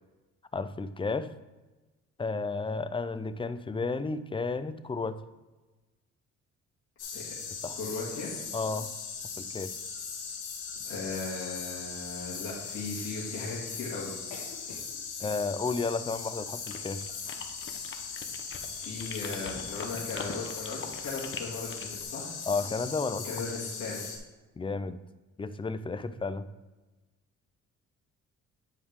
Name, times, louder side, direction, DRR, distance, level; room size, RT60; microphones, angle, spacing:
voice 1, 0.5-1.3 2.2-5.2 7.6-7.8 8.5-8.9 9.4-9.7 15.2-17.0 22.5-23.3 24.6-25.0 25.4-26.4, left 4 dB, 20° left, 12 dB, 0.4 m, -32 dB
sound 1, 7.0-24.2, left 5 dB, 85° left, 1.6 m, -39 dB
voice 2, 7.7-8.3 10.8-14.1 18.8-22.3 23.2-24.0, left 3 dB, 65° left, -6 dB, 2.2 m, -37 dB
sound 2, 16.7-22.0, left 6 dB, 40° left, 0.9 m, -42 dB
9.5 x 4.8 x 3.6 m, 1.2 s
cardioid pair, 90°, 30 cm